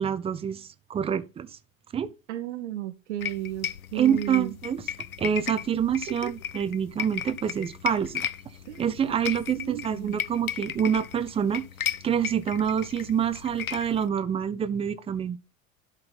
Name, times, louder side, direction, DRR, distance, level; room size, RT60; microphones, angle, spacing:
voice 1, 0.0-1.5 1.9-2.1 3.9-4.8 5.2-8.3 8.8-11.6 12.0-15.4, right 8 dB, 15° right, 0.6 m, -27 dB
voice 2, 2.3-4.6 6.1-6.3 8.6-8.8 9.6-10.2, right 13 dB, 55° right, 0.9 m, -34 dB
sound 1, 3.2-14.1, left 9 dB, 80° left, 0.6 m, -36 dB
11.5 x 5.3 x 4.1 m
figure-of-eight pair, 80°, 42 cm